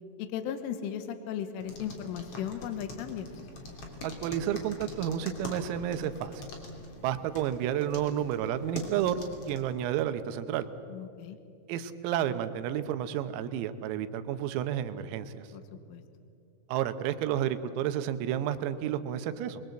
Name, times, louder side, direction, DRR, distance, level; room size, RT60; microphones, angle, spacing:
voice 1, 0.2-3.3 10.9-11.4 15.5-16.0, left 9 dB, 75° left, 9 dB, 3.6 m, -36 dB
sound 1, 1.6-9.7, left 1 dB, 35° left, 2.9 m, -44 dB
voice 2, 4.0-6.4 7.0-9.2 9.5-10.7 11.7-15.5 16.7-19.6, right 10 dB, 90° right, 10 dB, 3.8 m, -31 dB
28.0 x 21.5 x 7.8 m, 2.5 s
omnidirectional pair, 6.0 m